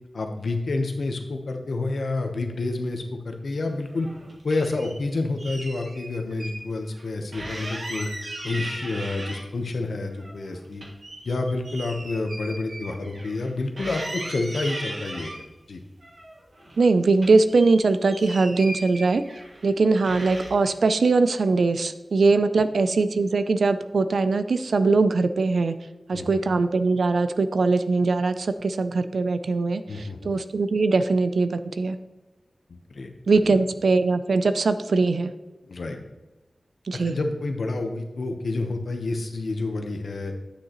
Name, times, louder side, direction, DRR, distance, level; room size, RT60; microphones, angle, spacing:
voice 1, 0.1-4.1 4.4-8.1 8.4-10.8 11.2-15.3 15.7-15.8 26.1-26.4 29.9-30.3 32.7-33.1 33.4-33.6 35.6-36.0 36.9-40.3, left 2 dB, 85° left, 5 dB, 0.9 m, -29 dB
sound 1, 3.9-4.9 5.4-6.6 6.9-7.0 7.3-9.7 10.1-13.5 13.8-15.4 16.0-16.9 17.1-19.7 20.0-20.7, right 1 dB, 60° right, 1.6 m, -37 dB
voice 2, 16.8-19.2 19.6-25.8 26.1-32.0 33.3-35.3 36.9-37.1, right 3 dB, 85° right, 11 dB, 0.4 m, -21 dB
9.8 x 6.5 x 3.0 m, 1.1 s
wide cardioid pair, 80°, 0 cm